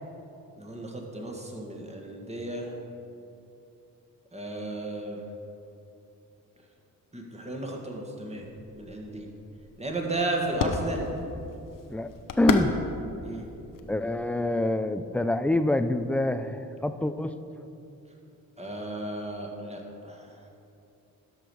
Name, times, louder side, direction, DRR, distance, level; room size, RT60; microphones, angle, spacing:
voice 1, 0.6-2.7 4.3-5.2 7.1-8.5 8.7-9.3 9.8-11.1 13.2-13.4 18.6-20.3, right 2 dB, 15° right, 0 dB, 1.8 m, -34 dB
sound 1, 8.4-14.7, left 5 dB, 55° left, 0.9 m, -34 dB
voice 2, 12.4-12.7 13.9-17.3, left 1 dB, 5° left, 10 dB, 0.4 m, -26 dB
13.0 x 5.2 x 4.8 m, 2.8 s
supercardioid pair, 55°, 39 cm